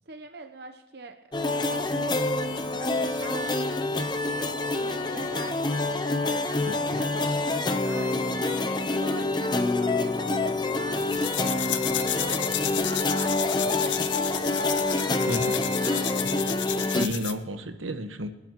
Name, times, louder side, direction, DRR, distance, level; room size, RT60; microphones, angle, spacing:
voice 1, 0.1-11.6 12.1-16.4, right 3 dB, 55° right, 6 dB, 0.8 m, -43 dB
sound 1, 1.3-17.1, left 2 dB, 20° left, 0.7 m, -27 dB
voice 2, 6.7-7.0 15.2-15.5 16.9-18.3, equal, 90° right, 7 dB, 1.3 m, -32 dB
sound 2, 10.9-17.4, left 12 dB, 70° left, 0.8 m, -32 dB
26.0 x 11.0 x 3.0 m, 1.1 s
head